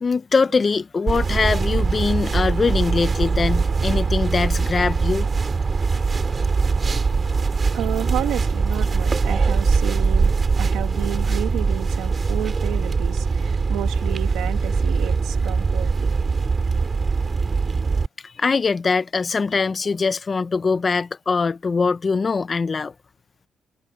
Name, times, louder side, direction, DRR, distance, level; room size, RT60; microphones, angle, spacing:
voice 1, 0.0-5.3 18.2-22.9, left 4 dB, 35° left, 1.0 m, -22 dB
sound 1, 1.1-18.1, right 4 dB, 35° right, 2.8 m, -22 dB
voice 2, 7.7-16.1, right 13 dB, 90° right, 2.6 m, -31 dB
cardioid pair, 90°, 0 cm